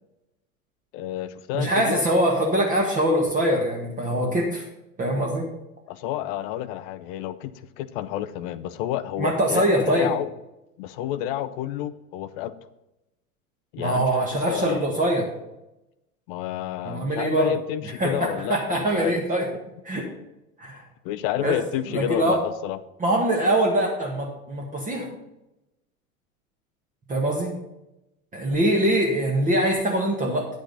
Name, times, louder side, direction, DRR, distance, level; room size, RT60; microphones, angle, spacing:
voice 1, 0.9-2.0 5.9-10.3 10.8-12.5 13.7-14.8 16.3-19.2 21.0-22.8, left 12 dB, 40° left, 13 dB, 0.7 m, -30 dB
voice 2, 1.5-4.7 5.0-5.5 9.2-10.1 13.8-15.3 16.8-17.6 17.8-18.2 18.5-19.5 19.8-20.1 20.6-20.8 21.4-21.6 21.9-22.4 23.0-25.1 27.1-27.6 28.3-30.5, right 1 dB, 20° right, 0 dB, 1.6 m, -23 dB
10.0 x 8.5 x 4.0 m, 0.93 s
figure-of-eight pair, 90°, 43 cm